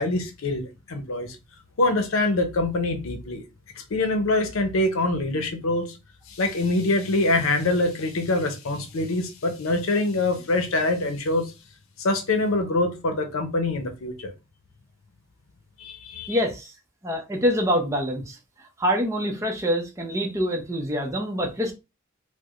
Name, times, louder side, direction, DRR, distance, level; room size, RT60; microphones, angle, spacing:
voice 1, 0.0-1.4 1.8-3.4 3.9-6.0 6.3-11.5 12.0-14.3 15.8-16.4, left 2 dB, 90° left, 0.7 m, -24 dB
voice 2, 16.3-16.7 17.0-18.4 18.8-21.7, equal, 15° right, 0.6 m, -25 dB
4.5 x 2.1 x 2.4 m
head